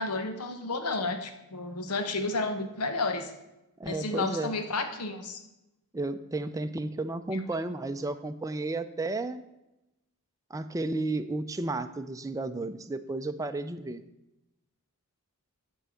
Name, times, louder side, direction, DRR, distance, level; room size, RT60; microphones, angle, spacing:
voice 1, 0.0-3.3 3.8-5.4, left 3 dB, 85° left, 7 dB, 1.1 m, -31 dB
voice 2, 3.8-4.6 5.9-9.4 10.5-14.0, right 2 dB, 15° right, 8 dB, 0.5 m, -33 dB
12.5 x 4.6 x 7.0 m, 0.93 s
head